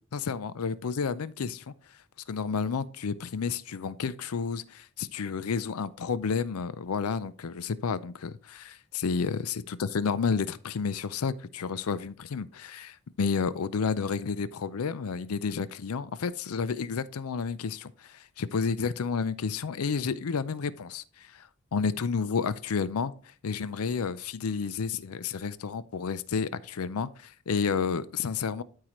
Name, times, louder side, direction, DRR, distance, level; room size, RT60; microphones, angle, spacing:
voice 1, 0.0-1.7 2.3-28.6, left 5 dB, 85° left, 0.5 m, -31 dB
12.5 x 4.8 x 3.0 m
head